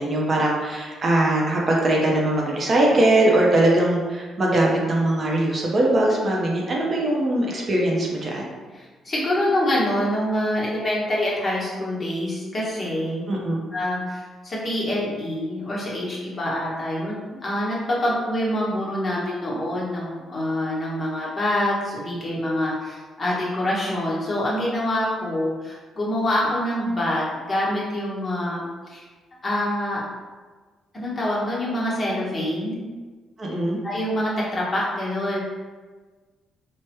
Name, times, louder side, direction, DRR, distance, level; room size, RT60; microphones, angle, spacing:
voice 1, 0.0-8.5 13.3-13.6 33.4-33.8, right 1 dB, 40° right, -2 dB, 0.6 m, -21 dB
voice 2, 8.7-13.2 13.7-17.1 17.4-29.1 29.4-30.1 30.9-32.8 33.8-35.4, left 1 dB, 30° left, -6 dB, 1.0 m, -25 dB
3.3 x 2.1 x 2.9 m, 1.4 s
cardioid pair, 90°, 0 cm